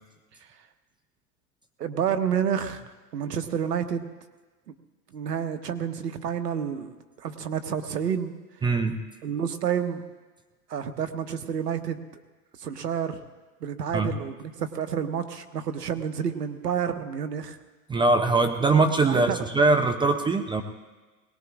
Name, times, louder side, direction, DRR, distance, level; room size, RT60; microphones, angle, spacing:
voice 1, 1.8-2.8 3.1-4.1 4.7-4.8 5.1-8.3 9.2-10.0 10.7-12.0 12.6-13.2 13.6-17.6 18.6-19.4, right 8 dB, 90° right, 8 dB, 1.3 m, -29 dB
voice 2, 8.6-9.0 13.9-14.1 17.9-20.6, right 3 dB, 10° right, 6 dB, 0.6 m, -22 dB
21.5 x 19.0 x 2.5 m, 1.3 s
hypercardioid pair, 115°, 47 cm